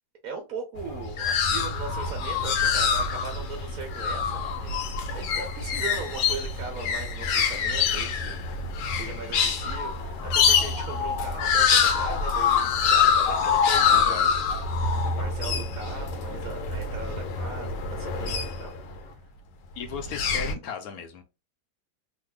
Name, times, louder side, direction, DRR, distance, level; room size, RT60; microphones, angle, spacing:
voice 1, 0.2-8.4 8.9-14.2 14.8-19.1, right 4 dB, 65° right, 1.1 m, -39 dB
sound 1, 0.8-19.0 19.9-20.5, left 6 dB, 90° left, 1.3 m, -25 dB
voice 2, 13.4-14.4 15.0-15.6 19.8-21.2, left 6 dB, 70° left, 1.0 m, -38 dB
3.2 x 2.1 x 3.4 m
omnidirectional pair, 1.8 m